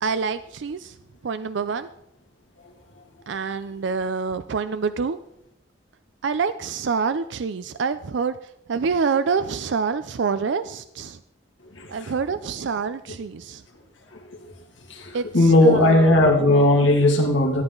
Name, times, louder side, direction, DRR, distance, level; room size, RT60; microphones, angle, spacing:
voice 1, 0.0-1.0 1.2-1.9 3.3-5.2 6.2-8.4 8.7-11.2 11.9-13.6 15.1-16.2, right 5 dB, 75° right, 12 dB, 0.4 m, -26 dB
voice 2, 14.9-17.6, left 1 dB, 85° left, 1 dB, 2.3 m, -17 dB
14.0 x 8.9 x 3.8 m, 0.76 s
head